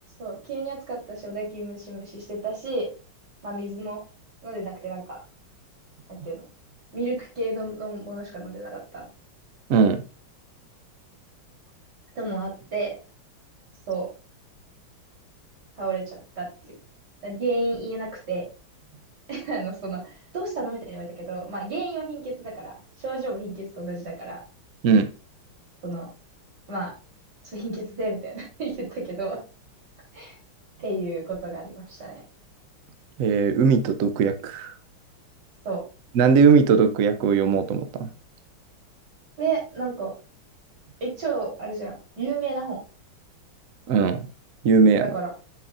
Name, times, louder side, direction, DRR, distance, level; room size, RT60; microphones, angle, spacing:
voice 1, 0.2-2.9 3.4-4.0 4.4-5.2 6.1-6.4 6.9-9.1 12.2-13.0 13.9-14.1 15.8-16.8 17.2-18.4 19.3-24.4 25.8-26.1 26.7-26.9 27.4-29.4 30.1-30.3 30.8-32.2 35.6-35.8 39.4-40.1 41.0-42.8 45.0-45.3, right 3 dB, 50° right, -4 dB, 4.3 m, -31 dB
voice 2, 9.7-10.0 24.8-25.1 33.2-34.7 36.1-38.1 43.9-44.2 44.6-45.0, right 5 dB, 80° right, 10 dB, 0.7 m, -19 dB
7.4 x 7.0 x 2.5 m, 0.33 s
omnidirectional pair, 2.3 m